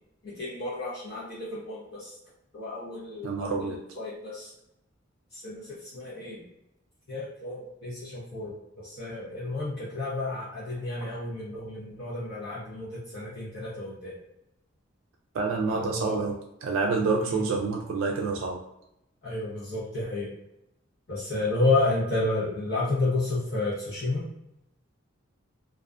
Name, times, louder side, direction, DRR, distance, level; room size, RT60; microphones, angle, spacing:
voice 1, 0.2-2.1 2.5-3.7 4.0-4.5 5.3-6.4 7.1-14.2 15.6-16.2 17.3-17.4 19.2-20.3 21.1-24.2, left 2 dB, 50° left, -9 dB, 0.7 m, -31 dB
voice 2, 3.2-3.8 11.0-11.1 15.3-18.6, right 4 dB, 80° right, 1 dB, 0.3 m, -28 dB
2.4 x 2.2 x 2.4 m, 0.85 s
head